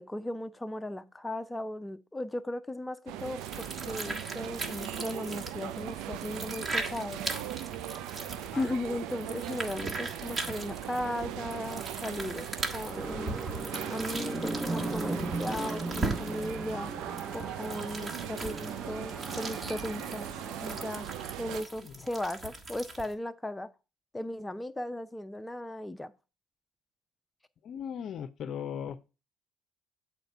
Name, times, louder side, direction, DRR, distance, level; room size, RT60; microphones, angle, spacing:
voice 1, 0.0-7.2 8.6-12.5 12.7-13.4 13.8-16.9 17.3-20.3 20.6-21.1 21.4-23.7 24.1-26.1, left 1 dB, 10° left, 0.6 m, -36 dB
sound 1, 3.1-21.6, right 11 dB, 75° right, 0.4 m, -39 dB
Alien Egg, 3.2-23.1, right 2 dB, 40° right, 1.5 m, -40 dB
sound 2, 12.9-20.9, right 2 dB, 15° right, 0.9 m, -38 dB
voice 2, 27.6-29.1, left 8 dB, 60° left, 0.5 m, -38 dB
7.9 x 4.3 x 5.4 m
hypercardioid pair, 65°, 0 cm